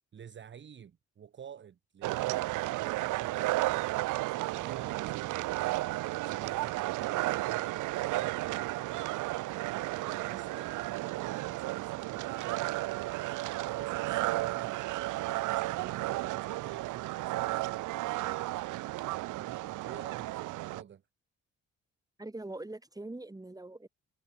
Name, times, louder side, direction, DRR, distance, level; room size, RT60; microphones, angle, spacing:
voice 1, 0.1-9.4 9.9-13.0 13.7-18.6 19.2-21.0, right 8 dB, 40° right, 0.9 m, -51 dB
sound 1, 2.0-20.8, right 19 dB, 85° right, 0.6 m, -33 dB
voice 2, 22.2-23.9, right 2 dB, 10° right, 3.3 m, -42 dB
cardioid pair, 90°, 30 cm